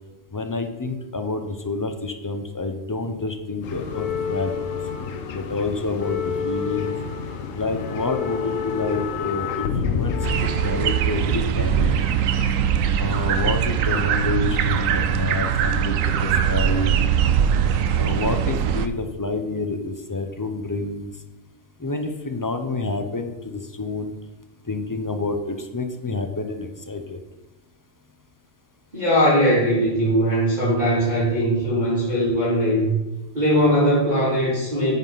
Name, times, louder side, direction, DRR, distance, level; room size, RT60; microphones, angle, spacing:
voice 1, 0.3-4.5 5.3-6.9 7.5-12.0 13.0-17.0 17.9-21.1 21.8-24.1 24.7-27.2, left 3 dB, 20° left, 6 dB, 0.6 m, -28 dB
sound 1, 3.6-13.1 14.0-15.1 15.3-15.6 16.5-16.6, left 6 dB, 80° left, 1.2 m, -29 dB
sound 2, 10.2-18.9, right 8 dB, 80° right, 1.0 m, -21 dB
voice 2, 28.9-32.9 33.3-35.0, equal, 35° right, -9 dB, 3.0 m, -20 dB
9.3 x 5.6 x 5.7 m, 1.1 s
omnidirectional pair, 1.4 m